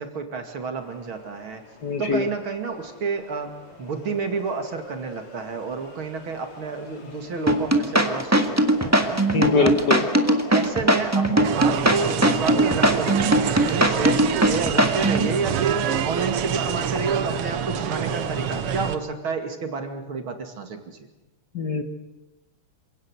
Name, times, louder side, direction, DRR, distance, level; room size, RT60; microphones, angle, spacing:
voice 1, 0.0-1.7 2.0-9.2 9.6-9.8 10.2-21.1, right 4 dB, 65° right, 5 dB, 3.2 m, -30 dB
sound 1, 0.8-18.8, left 3 dB, 80° left, 4.3 m, -42 dB
voice 2, 1.8-2.3 9.3-10.0 21.5-21.8, left 4 dB, 50° left, 7 dB, 2.2 m, -22 dB
sound 2, 7.5-15.3, right 1 dB, 10° right, 1.6 m, -19 dB
sound 3, 11.4-19.0, right 9 dB, 85° right, 2.0 m, -27 dB
27.0 x 17.5 x 8.0 m, 1.0 s
omnidirectional pair, 2.4 m